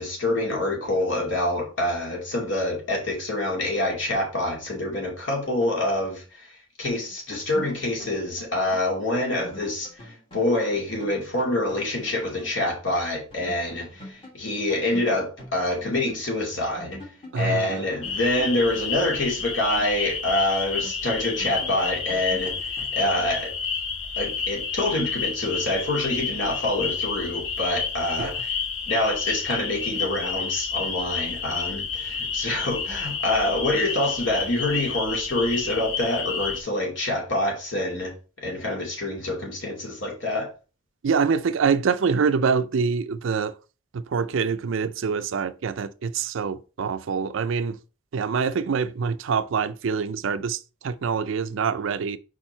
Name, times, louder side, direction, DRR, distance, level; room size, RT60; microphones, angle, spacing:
voice 1, 0.0-17.0 17.3-23.5 24.2-28.5 28.9-38.1 38.4-40.5, left 1 dB, 65° left, 2.5 m, -26 dB
sound 1, 6.8-12.6 12.9-13.0 13.3-16.2 16.5-20.3 20.7-23.5, left 1 dB, 25° left, 1.7 m, -45 dB
voice 2, 17.3-17.8 28.2-28.3 41.0-43.6 43.9-47.8 48.1-52.2, right 5 dB, 70° right, 0.4 m, -25 dB
sound 2, 18.0-36.6, left 5 dB, 85° left, 1.1 m, -30 dB
5.0 x 4.4 x 4.4 m
head